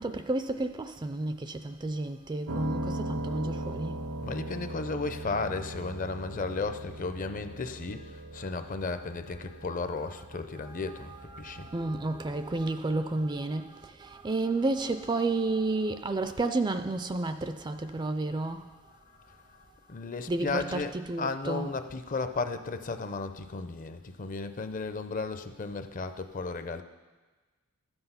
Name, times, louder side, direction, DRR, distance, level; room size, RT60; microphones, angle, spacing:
voice 1, 0.0-4.6 8.4-8.6 9.9-10.1 10.5-18.8 20.3-21.7, right 2 dB, 20° right, 0.3 m, -32 dB
Piano, 2.5-12.6, right 1 dB, 80° right, 0.9 m, -39 dB
voice 2, 4.2-11.7 16.4-16.5 18.9-26.8, left 3 dB, 35° left, 0.5 m, -35 dB
12.5 x 7.9 x 5.6 m
head